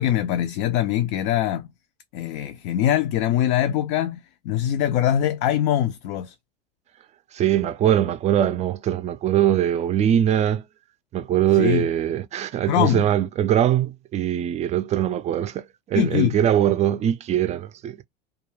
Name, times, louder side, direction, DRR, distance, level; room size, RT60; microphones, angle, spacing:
voice 1, 0.0-1.7 2.1-6.3 11.6-11.9 12.7-13.0 15.9-16.4, left 11 dB, 60° left, 0.4 m, -23 dB
voice 2, 7.3-10.6 11.1-18.0, right 10 dB, 30° right, 0.4 m, -22 dB
2.3 x 2.2 x 3.1 m
supercardioid pair, 105°, 21 cm